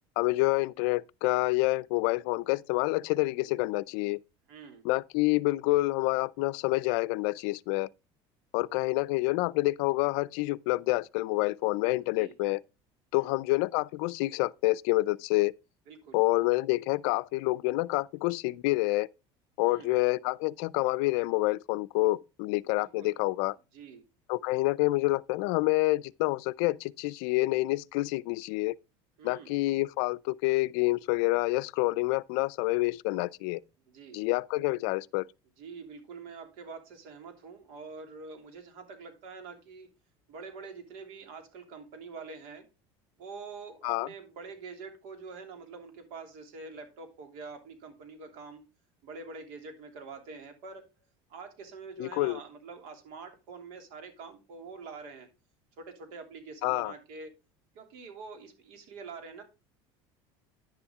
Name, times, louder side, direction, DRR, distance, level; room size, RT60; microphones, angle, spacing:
voice 1, 0.2-4.2 4.8-7.9 8.5-12.6 13.1-15.5 16.1-19.1 19.6-23.6 24.3-28.8 29.2-33.6 34.1-35.3 43.8-44.1 52.0-52.4 56.6-56.9, left 21 dB, 75° left, 0.5 m, -28 dB
voice 2, 4.5-4.9 12.2-12.3 13.1-13.4 15.9-16.2 19.6-19.9 22.7-23.2 23.7-24.1 29.2-29.5 33.9-34.2 35.6-39.9 40.3-42.7 43.2-48.6 49.0-50.8 51.3-55.3 55.8-57.3 57.7-59.4, right 4 dB, 75° right, 3.0 m, -45 dB
10.5 x 7.1 x 3.5 m
supercardioid pair, 105°, 13 cm